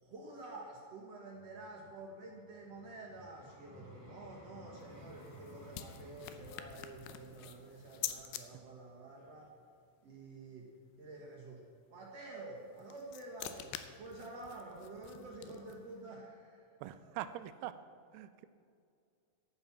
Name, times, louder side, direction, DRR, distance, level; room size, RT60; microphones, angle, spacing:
voice 1, 0.0-9.5 10.0-10.7 11.0-11.6 11.9-16.7, right 2 dB, 60° right, -1 dB, 1.9 m, -49 dB
Vehicle, 1.3-10.4 11.0-11.2, left 1 dB, 25° left, 1.2 m, -58 dB
sound 1, 4.8-8.4 12.6-15.9, left 11 dB, 85° left, 2.6 m, -47 dB
voice 2, 16.8-17.8 18.1-18.5, right 12 dB, 85° right, 12 dB, 2.4 m, -43 dB
11.5 x 8.8 x 7.2 m, 2.4 s
omnidirectional pair, 4.5 m